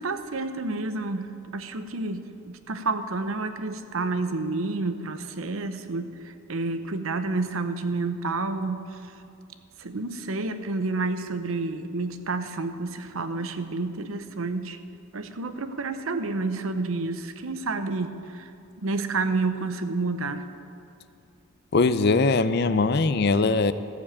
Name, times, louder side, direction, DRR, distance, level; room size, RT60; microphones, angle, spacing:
voice 1, 0.0-9.1 9.8-14.8 15.1-18.5 18.8-20.5, right 3 dB, 80° right, 9 dB, 0.8 m, -30 dB
voice 2, 21.7-23.7, left 3 dB, 50° left, 13 dB, 0.5 m, -21 dB
14.5 x 7.1 x 8.6 m, 2.7 s
head